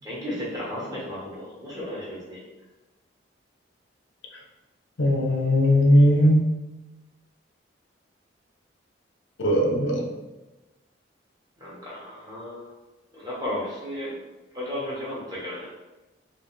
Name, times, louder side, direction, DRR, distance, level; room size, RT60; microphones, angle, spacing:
voice 1, 0.0-2.4 11.6-12.7 13.1-14.1 14.5-15.7, left 1 dB, 20° right, -7 dB, 1.2 m, -34 dB
voice 2, 5.0-6.5 9.4-10.1, equal, 85° left, 0 dB, 0.7 m, -19 dB
4.0 x 2.4 x 3.1 m, 1.1 s
head